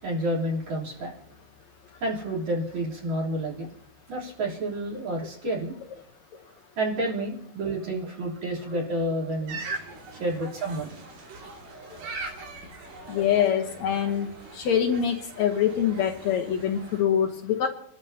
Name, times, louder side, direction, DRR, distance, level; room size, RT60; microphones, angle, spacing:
voice 1, 0.0-1.1 2.0-3.7 4.1-5.7 6.8-9.6 10.2-11.0 12.0-12.1 12.7-12.8, right 1 dB, 60° right, -6 dB, 4.9 m, -29 dB
sound 1, 9.5-17.0, right 3 dB, 85° right, 4.1 m, -41 dB
voice 2, 13.1-14.3 14.5-17.7, left 9 dB, 65° left, 4 dB, 2.1 m, -24 dB
28.0 x 12.5 x 2.8 m, 0.74 s
omnidirectional pair, 3.7 m